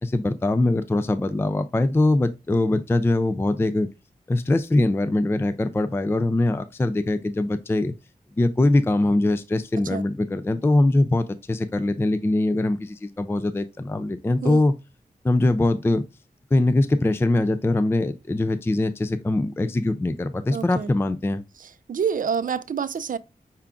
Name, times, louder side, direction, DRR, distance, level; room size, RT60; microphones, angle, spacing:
voice 1, 0.0-3.9 4.3-7.9 8.4-14.7 15.2-16.0 16.5-21.4, left 2 dB, 15° left, 0.3 m, -22 dB
voice 2, 20.5-20.9 21.6-23.2, right 7 dB, 65° right, 0.4 m, -27 dB
5.7 x 3.6 x 2.4 m
wide cardioid pair, 115°, 15 cm